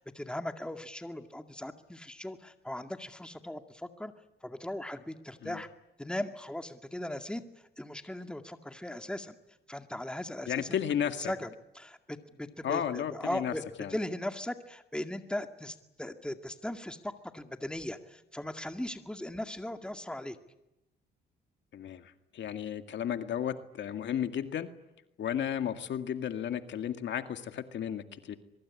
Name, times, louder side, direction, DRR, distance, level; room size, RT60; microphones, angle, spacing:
voice 1, 0.0-4.1 4.4-5.7 6.0-9.3 9.7-10.8 11.2-11.5 11.8-13.6 13.9-20.4, left 1 dB, 5° left, 7 dB, 2.1 m, -38 dB
voice 2, 10.5-11.3 12.6-13.5 13.8-14.0 21.7-24.7 25.2-28.4, left 9 dB, 65° left, 8 dB, 2.1 m, -33 dB
23.5 x 23.0 x 9.8 m, 0.92 s
cardioid pair, 90°, 20 cm